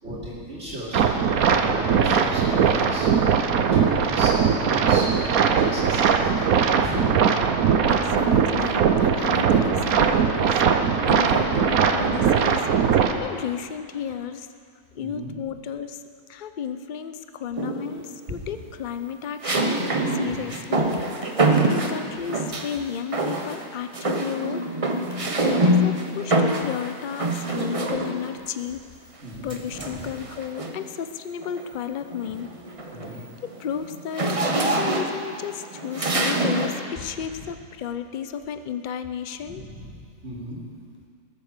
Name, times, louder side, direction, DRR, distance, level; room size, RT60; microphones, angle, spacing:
voice 1, 0.0-7.2 9.5-10.0 15.0-15.3 20.2-20.6 21.4-21.7 29.2-30.1 32.9-33.2 37.0-37.1 37.3-37.5 39.5-39.9 40.2-40.6, equal, 50° right, -7 dB, 3.0 m, -35 dB
sound 1, 0.9-13.1, right 6 dB, 70° right, 1.3 m, -20 dB
voice 2, 7.9-12.6 12.9-14.5 14.9-16.0 16.3-21.0 21.6-24.7 25.4-28.8 29.4-32.5 33.6-39.7, left 8 dB, 60° left, 10 dB, 0.5 m, -33 dB
sound 2, 17.6-18.1 19.4-22.8 23.1-23.7 23.9-28.4 29.5-30.9 31.4-31.7 32.0-36.8, right 1 dB, 25° right, 0.9 m, -25 dB
19.0 x 8.3 x 6.6 m, 2.2 s
omnidirectional pair, 1.6 m